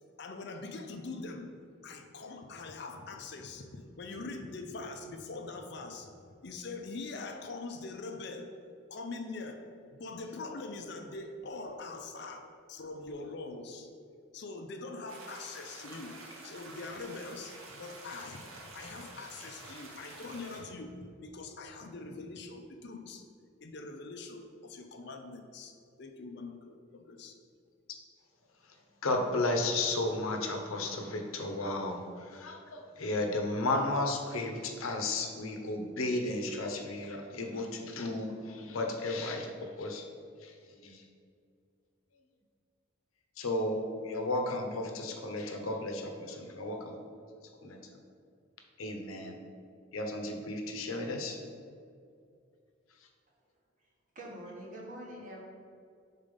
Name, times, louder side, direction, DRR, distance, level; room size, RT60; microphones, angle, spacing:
voice 1, 0.2-1.5 1.8-8.5 8.9-9.6 9.9-13.9 14.3-16.2 16.4-23.2 23.6-27.4, left 3 dB, 55° left, 5 dB, 0.5 m, -43 dB
sound 1, 15.1-20.6, right 2 dB, 90° right, 1.1 m, -49 dB
voice 2, 29.0-40.0 40.4-41.0 43.4-47.0 47.6-47.8 48.8-49.4 49.9-51.4, left 2 dB, 90° left, 3 dB, 0.8 m, -34 dB
voice 3, 54.1-55.4, right 1 dB, 40° right, -3 dB, 1.2 m, -44 dB
5.3 x 4.0 x 5.2 m, 2.3 s
head